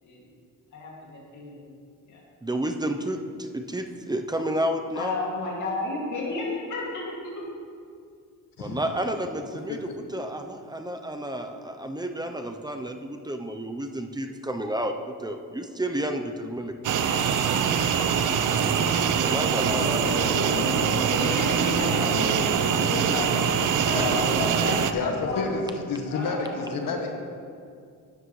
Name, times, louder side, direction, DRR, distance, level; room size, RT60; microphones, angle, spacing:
voice 1, 0.7-1.6 2.1-2.2 4.9-7.4 18.5-25.4 26.0-27.1, left 2 dB, 55° left, -4 dB, 2.5 m, -32 dB
voice 2, 2.4-5.2 8.6-16.7 19.2-19.9, right 1 dB, 10° right, 5 dB, 0.6 m, -31 dB
sound 1, 16.8-24.9, right 7 dB, 60° right, 0.7 m, -24 dB
voice 3, 24.9-27.1, left 4 dB, 75° left, 3 dB, 1.4 m, -30 dB
12.0 x 9.4 x 3.2 m, 2.2 s
cardioid pair, 105°, 34 cm